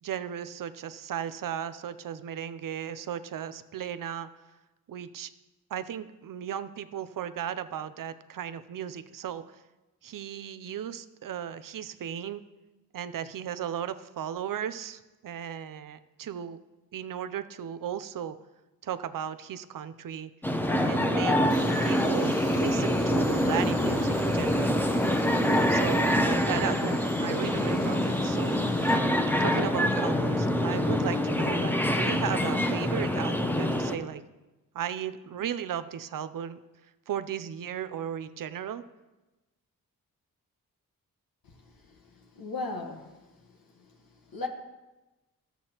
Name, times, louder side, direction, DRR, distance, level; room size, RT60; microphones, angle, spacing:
voice 1, 0.0-4.3 4.9-5.3 5.7-9.6 10.0-12.4 12.9-16.6 16.9-18.4 18.8-20.3 20.8-24.8 25.7-28.6 29.4-34.2 34.7-36.6 37.1-38.8, right 9 dB, 65° right, 13 dB, 0.6 m, -35 dB
sound 1, 20.4-33.9, left 1 dB, 5° left, 0.7 m, -25 dB
Tools, 21.5-29.0, equal, 25° left, 2.0 m, -45 dB
voice 2, 41.4-43.2 43.7-43.9 44.3-44.5, left 3 dB, 70° left, 2 dB, 1.3 m, -38 dB
14.0 x 7.1 x 2.9 m, 1.1 s
cardioid pair, 60°, 36 cm